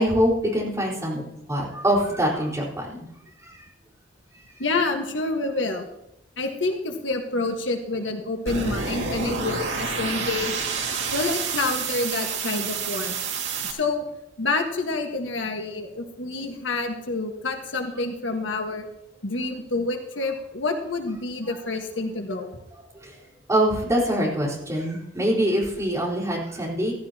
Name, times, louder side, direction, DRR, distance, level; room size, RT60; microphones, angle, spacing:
voice 1, 0.0-3.1 3.4-3.7 22.9-23.2 23.5-26.9, equal, 15° right, -4 dB, 4.2 m, -24 dB
voice 2, 4.6-5.9 6.4-10.7 11.1-13.2 13.7-14.0 14.4-18.9 19.2-22.5, left 3 dB, 80° left, 4 dB, 1.5 m, -28 dB
sound 1, 8.5-13.7, right 5 dB, 85° right, 2.2 m, -29 dB
15.0 x 15.0 x 2.9 m, 0.86 s
head